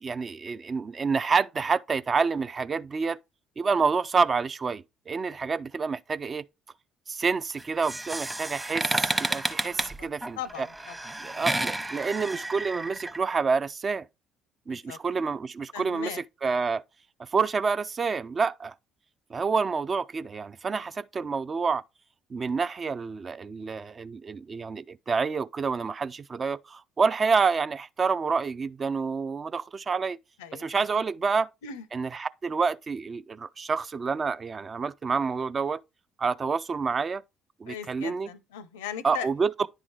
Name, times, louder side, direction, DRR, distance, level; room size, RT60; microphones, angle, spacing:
voice 1, 0.0-3.2 3.6-6.5 7.1-10.7 11.2-14.1 14.7-16.1 16.4-16.8 17.2-18.7 19.3-21.8 22.3-30.2 30.6-31.5 31.9-35.8 36.2-37.2 37.6-38.3 39.0-39.7, right 5 dB, 40° right, 0.3 m, -28 dB
sound 1, 7.6-13.2, right 1 dB, 15° right, 0.8 m, -31 dB
voice 2, 9.7-10.1 10.4-11.1 11.4-11.5 14.7-15.0 15.7-16.2 20.7-20.9 30.4-30.9 31.3-31.8 37.7-39.3, left 8 dB, 85° left, 0.5 m, -39 dB
9.9 x 3.7 x 3.2 m
hypercardioid pair, 60°, 0 cm